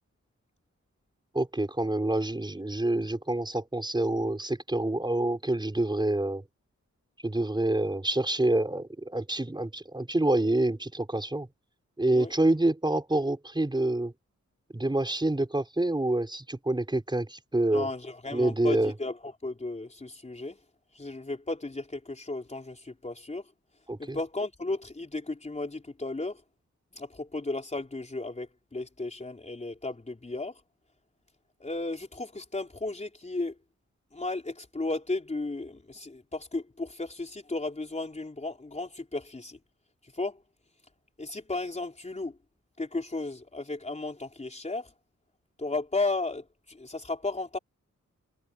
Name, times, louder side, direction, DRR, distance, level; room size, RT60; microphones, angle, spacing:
voice 1, 1.3-6.4 7.2-11.5 12.0-14.1 14.7-17.9 18.3-18.9 23.9-24.2, right 2 dB, 15° right, 5.3 m, -27 dB
voice 2, 17.7-20.6 20.9-23.4 24.0-26.4 27.0-30.6 31.6-33.5 34.1-39.6 40.1-40.4 41.2-42.3 42.8-44.9 45.6-47.6, left 2 dB, 25° left, 4.3 m, -34 dB
wide cardioid pair, 170°, 29 cm